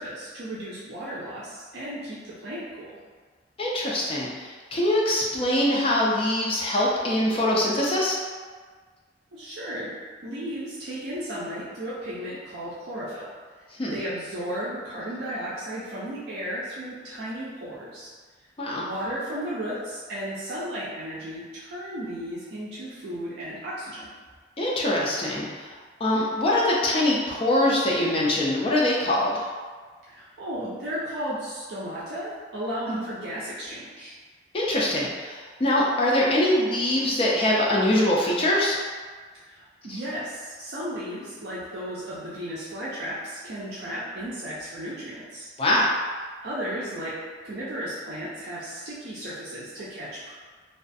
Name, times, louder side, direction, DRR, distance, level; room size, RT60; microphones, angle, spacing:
voice 1, 0.0-3.0 9.3-9.9 10.2-13.3 13.9-18.1 18.7-24.1 30.1-34.1 39.4-45.5 46.4-47.2 47.4-50.3, equal, 60° right, -8 dB, 0.4 m, -34 dB
voice 2, 3.6-8.2 13.8-14.0 18.6-18.9 24.6-25.7 26.0-29.5 32.9-33.0 34.5-38.8 39.9-40.0 45.6-45.9, left 1 dB, 30° left, -4 dB, 0.4 m, -23 dB
2.3 x 2.3 x 2.5 m, 1.5 s
head